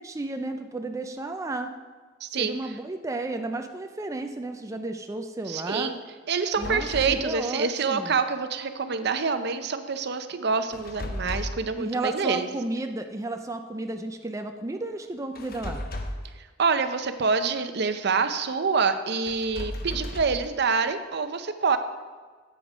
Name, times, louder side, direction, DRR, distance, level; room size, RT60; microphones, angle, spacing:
voice 1, 0.0-1.7 2.4-5.9 6.6-8.1 11.8-15.8, right 2 dB, 15° right, 5 dB, 0.5 m, -33 dB
voice 2, 2.2-2.6 5.5-6.0 6.3-12.5 16.6-21.8, right 5 dB, 60° right, 10 dB, 0.7 m, -26 dB
sound 1, 6.5-7.3 10.7-11.7 15.4-16.3 19.3-20.5, left 1 dB, 50° left, 1.1 m, -35 dB
9.9 x 7.8 x 5.0 m, 1.4 s
head